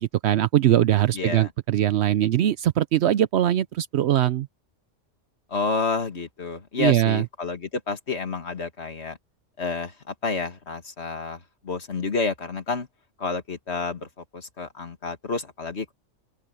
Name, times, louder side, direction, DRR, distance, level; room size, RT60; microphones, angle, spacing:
voice 1, 0.2-4.5 6.8-7.2, right 12 dB, 70° right, 0.8 m, -21 dB
voice 2, 1.1-1.5 5.5-9.2 9.6-12.9 13.2-15.9, left 4 dB, 60° left, 2.2 m, -30 dB
open air
omnidirectional pair, 1.3 m